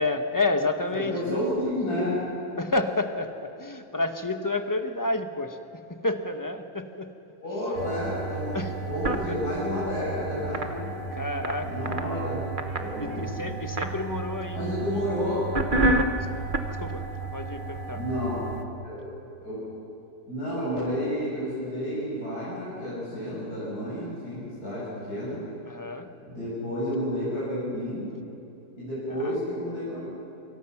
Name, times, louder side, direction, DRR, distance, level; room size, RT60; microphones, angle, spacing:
voice 1, 0.0-1.7 2.6-7.1 8.5-8.8 9.3-9.4 11.1-11.7 13.0-14.8 16.3-16.4 16.8-17.0 17.3-18.0 25.6-26.1 29.1-29.4, left 2 dB, 15° left, 7 dB, 1.0 m, -30 dB
voice 2, 0.9-2.2 7.4-10.9 11.6-12.4 12.8-13.4 14.5-15.5 17.9-18.4 18.8-19.0 19.4-19.6 20.3-25.4 26.3-28.1 28.7-30.0, left 1 dB, 60° left, -9 dB, 7.5 m, -30 dB
sound 1, 7.7-18.6, right 2 dB, 35° right, 1.1 m, -31 dB
27.5 x 26.5 x 6.0 m, 2.8 s
omnidirectional pair, 1.8 m